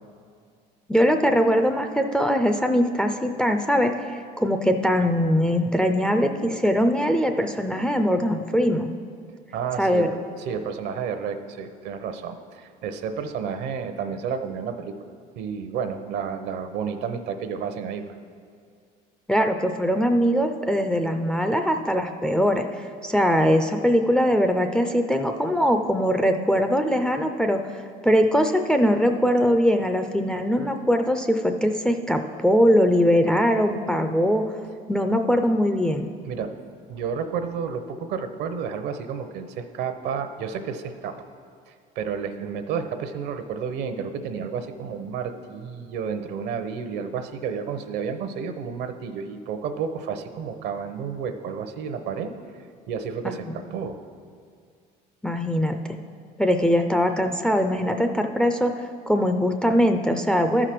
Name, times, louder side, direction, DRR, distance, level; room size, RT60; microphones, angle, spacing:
voice 1, 0.9-3.9 4.4-8.9 9.8-10.1 19.3-22.6 23.0-27.6 28.0-34.4 34.9-36.1 53.2-53.3 55.2-56.0 56.4-58.7 59.1-60.7, equal, 5° left, 5 dB, 0.4 m, -21 dB
voice 2, 9.5-10.1 10.4-14.9 15.4-18.0 36.2-36.5 36.9-41.1 41.7-52.3 52.9-54.0, right 6 dB, 65° right, 8 dB, 0.8 m, -31 dB
13.0 x 4.9 x 5.9 m, 2.2 s
cardioid pair, 115°, 19 cm